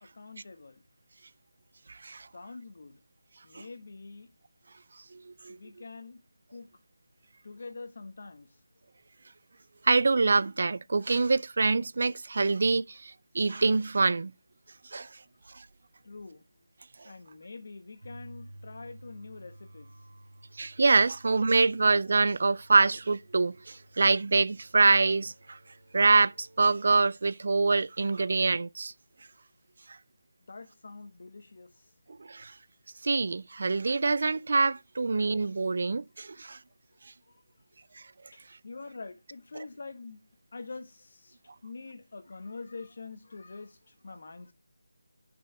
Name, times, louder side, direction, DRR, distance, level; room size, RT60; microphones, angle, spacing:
voice 1, 0.0-0.8 2.3-3.0 3.4-4.3 5.5-6.2 6.5-6.7 7.4-8.5 16.0-16.4 17.0-19.9 30.5-31.8 37.3-37.4 38.3-40.2 40.5-44.5, left 3 dB, 50° left, 1.5 m, -45 dB
voice 2, 1.9-2.3 3.5-3.6 5.1-5.6 9.8-14.3 14.9-15.1 15.6-15.7 17.0-17.1 20.6-25.6 25.9-28.9 32.3-32.5 33.0-36.6 39.6-39.7, right 3 dB, 50° right, 0.3 m, -25 dB
sound 1, 18.0-26.7, right 1 dB, 65° right, 2.5 m, -53 dB
8.9 x 6.1 x 3.4 m
figure-of-eight pair, 170°, 0 cm